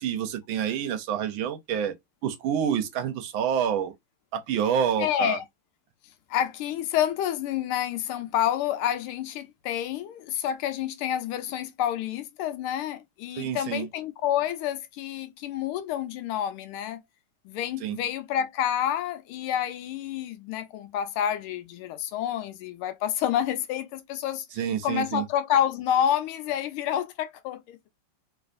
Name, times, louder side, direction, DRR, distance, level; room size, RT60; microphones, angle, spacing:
voice 1, 0.0-1.9 2.2-3.9 4.3-5.4 13.4-13.9 17.8-18.0 24.6-25.2, right 8 dB, 75° right, 1.3 m, -27 dB
voice 2, 5.0-5.4 6.3-17.0 17.4-27.8, left 10 dB, 80° left, 1.5 m, -28 dB
3.3 x 3.1 x 2.5 m
omnidirectional pair, 2.4 m